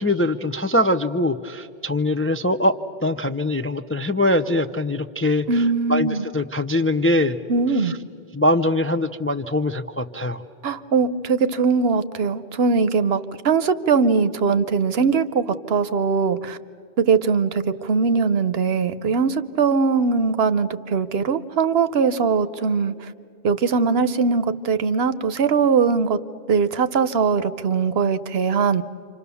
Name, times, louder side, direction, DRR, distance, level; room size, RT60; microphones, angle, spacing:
voice 1, 0.0-2.7 3.0-5.6 5.9-7.4 7.8-7.9 8.3-10.4, left 1 dB, 20° left, 7 dB, 0.3 m, -22 dB
voice 2, 5.5-6.3 7.5-8.0 10.6-16.6 17.0-23.1 23.4-26.2 26.5-28.8, right 5 dB, 70° right, 13 dB, 1.0 m, -21 dB
28.5 x 26.0 x 7.0 m, 2.4 s
omnidirectional pair, 1.1 m